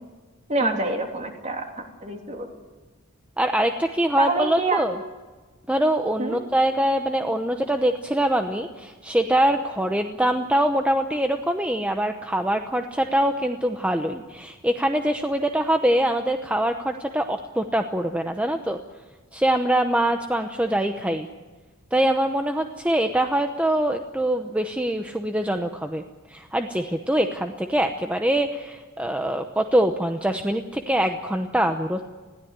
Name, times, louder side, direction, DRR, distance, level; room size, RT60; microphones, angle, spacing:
voice 1, 0.5-2.5 4.2-4.8 6.2-6.4, right 3 dB, 35° right, 2 dB, 3.1 m, -26 dB
voice 2, 3.4-5.0 5.7-18.8 19.3-21.3 21.9-26.0 26.3-32.1, right 1 dB, 5° right, 5 dB, 0.8 m, -23 dB
21.0 x 16.0 x 9.6 m, 1.3 s
head